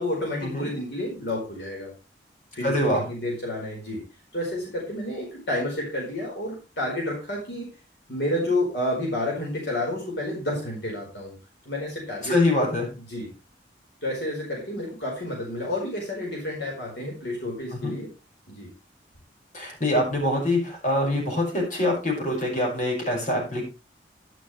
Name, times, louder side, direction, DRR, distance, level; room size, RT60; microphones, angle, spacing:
voice 1, 0.0-1.9 2.5-4.0 4.3-7.7 8.1-11.3 11.6-12.3 13.1-13.3 14.0-18.1 18.5-18.7, left 1 dB, 65° left, -2 dB, 4.7 m, -30 dB
voice 2, 2.6-3.0 12.2-12.9 17.7-18.0 19.5-23.6, left 1 dB, 45° left, 0 dB, 5.9 m, -24 dB
11.5 x 11.0 x 3.3 m, 0.30 s
head